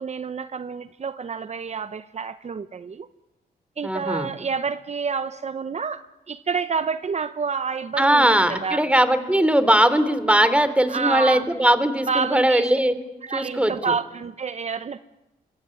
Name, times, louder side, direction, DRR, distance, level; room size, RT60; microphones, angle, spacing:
voice 1, 0.0-3.1 3.8-8.8 10.9-11.5 12.1-12.7 13.2-15.0, right 5 dB, 45° right, 12 dB, 1.0 m, -28 dB
voice 2, 3.8-4.3 8.0-12.9 13.3-13.9, right 1 dB, 5° right, 12 dB, 3.4 m, -19 dB
26.0 x 22.5 x 9.9 m, 0.98 s
cardioid pair, 80°, 16 cm